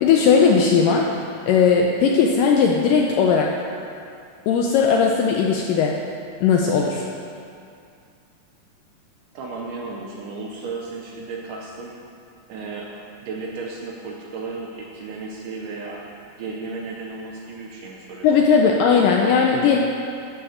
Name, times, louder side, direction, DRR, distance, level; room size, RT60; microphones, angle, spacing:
voice 1, 0.0-1.1 1.5-3.5 4.5-6.0 6.4-7.1 18.2-19.8, left 6 dB, 80° left, 1 dB, 2.0 m, -17 dB
voice 2, 9.3-11.9 12.5-12.9 13.2-16.0 16.4-18.3, right 4 dB, 75° right, -1 dB, 2.0 m, -34 dB
13.0 x 4.9 x 6.2 m, 2.4 s
omnidirectional pair, 4.4 m